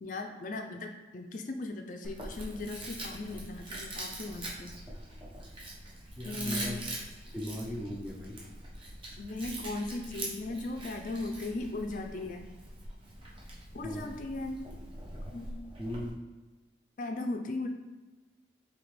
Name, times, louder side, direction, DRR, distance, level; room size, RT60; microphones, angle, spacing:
voice 1, 0.0-4.7 6.2-6.8 9.2-12.5 13.7-14.6 15.3-15.6 17.0-17.7, left 2 dB, 45° left, 4 dB, 0.4 m, -37 dB
Chewing mastication, 2.0-16.1, right 1 dB, 30° right, 0.9 m, -43 dB
voice 2, 6.2-6.8 7.3-8.4 13.8-14.1 15.8-16.1, equal, 10° right, -1 dB, 0.6 m, -38 dB
5.0 x 3.3 x 3.1 m, 1.2 s
head